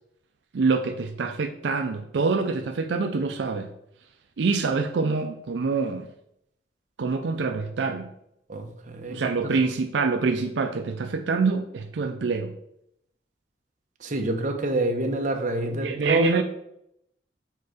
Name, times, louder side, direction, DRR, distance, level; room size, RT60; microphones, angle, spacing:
voice 1, 0.5-3.7 4.4-6.1 7.0-8.1 9.1-12.5 15.8-16.4, right 4 dB, 80° right, 6 dB, 0.4 m, -25 dB
voice 2, 8.5-9.5 14.0-16.4, right 2 dB, 45° right, 4 dB, 0.9 m, -27 dB
4.7 x 4.6 x 4.8 m, 0.77 s
head